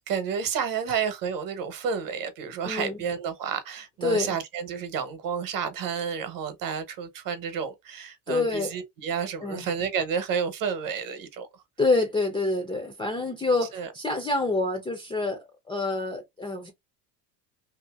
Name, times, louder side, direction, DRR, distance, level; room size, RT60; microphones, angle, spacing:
voice 1, 0.1-11.5 13.7-13.9, right 7 dB, 45° right, 0.9 m, -30 dB
voice 2, 2.6-3.0 4.0-4.4 8.3-8.7 9.4-9.7 11.8-16.7, left 3 dB, 10° left, 0.4 m, -27 dB
2.7 x 2.7 x 2.3 m
supercardioid pair, 100°, 48 cm